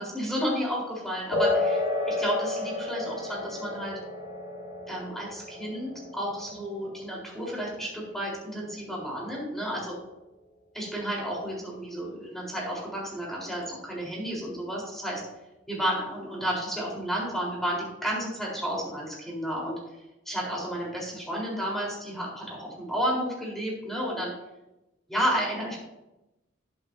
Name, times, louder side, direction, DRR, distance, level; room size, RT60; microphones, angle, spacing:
voice 1, 0.0-3.9 4.9-9.9 10.7-15.2 15.7-19.8 20.3-24.3 25.1-25.8, equal, ahead, -4 dB, 3.9 m, -32 dB
sound 1, 1.3-9.3, left 2 dB, 40° left, 3.1 m, -32 dB
11.5 x 11.0 x 2.7 m, 0.94 s
head